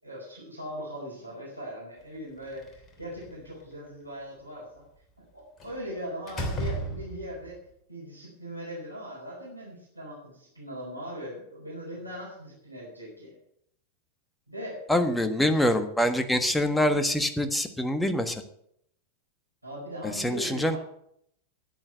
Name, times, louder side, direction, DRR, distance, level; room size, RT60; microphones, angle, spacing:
voice 1, 0.0-4.8 5.2-7.6 7.9-13.3 14.5-14.9 19.6-20.8, equal, 85° right, -5 dB, 4.8 m, -40 dB
Slam, 2.4-3.5 5.6-5.8 6.3-7.5, right 1 dB, 20° left, 3.0 m, -34 dB
voice 2, 14.9-18.4 20.2-20.8, left 1 dB, 5° left, 8 dB, 1.4 m, -25 dB
10.5 x 9.1 x 8.9 m, 0.72 s
figure-of-eight pair, 90°, 0 cm